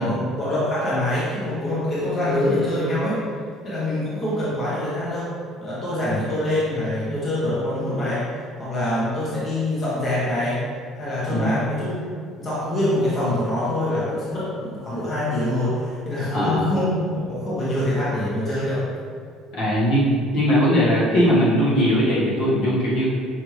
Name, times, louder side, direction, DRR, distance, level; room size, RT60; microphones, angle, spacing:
voice 1, 0.0-3.2 3.6-5.3 5.6-8.2 8.6-10.6 10.9-12.0 12.4-18.8, left 1 dB, 30° left, -9 dB, 1.0 m, -24 dB
voice 2, 16.3-16.7 19.5-20.1 20.3-23.1, equal, 65° left, -8 dB, 1.5 m, -20 dB
5.7 x 2.5 x 3.2 m, 2.1 s
cardioid pair, 160°, 0 cm